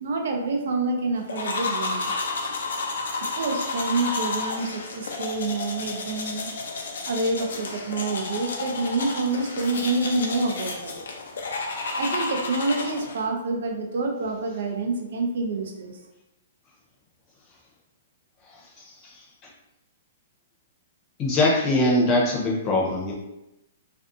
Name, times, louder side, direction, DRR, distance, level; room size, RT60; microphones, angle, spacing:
voice 1, 0.0-2.1 3.3-6.5 7.0-11.0 12.0-15.9, right 3 dB, 70° right, 2 dB, 0.5 m, -27 dB
sound 1, 1.3-13.2, left 3 dB, 80° left, 0.5 m, -31 dB
voice 2, 21.2-23.1, left 1 dB, 25° left, -3 dB, 0.7 m, -21 dB
2.5 x 2.2 x 2.5 m, 0.92 s
hypercardioid pair, 150°, 0 cm